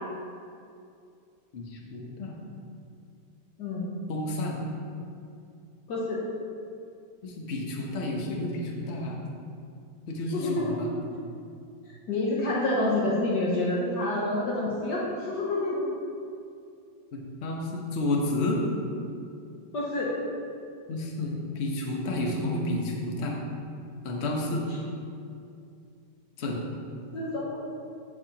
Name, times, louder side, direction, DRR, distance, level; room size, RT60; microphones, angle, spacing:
voice 1, 1.5-2.4 4.1-4.6 7.2-9.2 10.1-10.9 17.1-18.6 20.9-23.4 24.0-24.6 26.4-26.7, left 2 dB, 45° left, -1 dB, 1.0 m, -31 dB
voice 2, 10.3-10.8 12.1-15.9 19.7-20.1 27.1-27.6, left 2 dB, 65° left, -5 dB, 1.6 m, -28 dB
14.0 x 4.8 x 2.9 m, 2.5 s
omnidirectional pair, 2.0 m